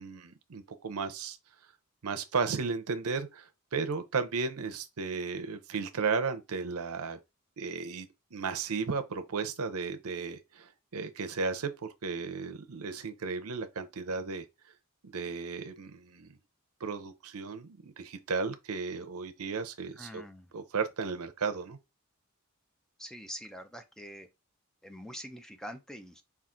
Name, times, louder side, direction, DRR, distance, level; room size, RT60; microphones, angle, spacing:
voice 1, 0.0-1.4 2.0-7.2 7.6-14.4 15.0-16.4 16.8-20.2 20.5-21.8, right 4 dB, 75° right, 0.7 m, -34 dB
voice 2, 20.0-20.5 23.0-24.3 24.8-26.2, equal, 5° left, 0.4 m, -44 dB
5.7 x 2.4 x 3.7 m
head